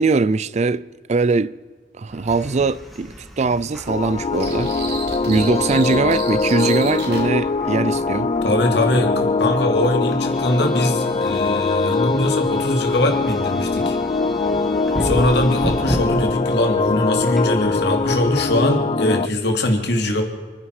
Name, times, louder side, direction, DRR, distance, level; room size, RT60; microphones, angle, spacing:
voice 1, 0.0-1.5 2.0-4.7 5.3-8.3, right 4 dB, 40° right, 0.4 m, -21 dB
sound 1, 2.1-18.5, equal, ahead, 2.2 m, -34 dB
sound 2, 3.9-19.3, left 3 dB, 30° left, 0.4 m, -22 dB
sound 3, 4.4-7.3, right 5 dB, 65° right, 2.8 m, -33 dB
voice 2, 8.4-14.0 15.0-20.2, left 1 dB, 65° left, 2.7 m, -21 dB
29.0 x 10.0 x 4.9 m
head